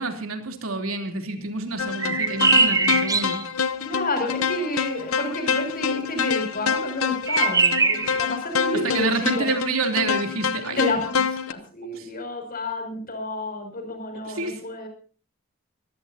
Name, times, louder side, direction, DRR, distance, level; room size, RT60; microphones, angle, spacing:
voice 1, 0.0-3.4 8.7-10.8 11.8-12.1 14.2-14.6, right 3 dB, 80° right, 5 dB, 3.2 m, -28 dB
sound 1, 1.8-11.5, left 6 dB, 85° left, 1.0 m, -27 dB
sound 2, 2.0-3.4 7.3-8.2, right 4 dB, 15° right, 0.9 m, -21 dB
voice 2, 3.8-9.5 10.8-11.2 11.5-14.9, left 2 dB, 45° left, 4 dB, 6.7 m, -30 dB
25.0 x 15.0 x 2.8 m, 0.39 s
head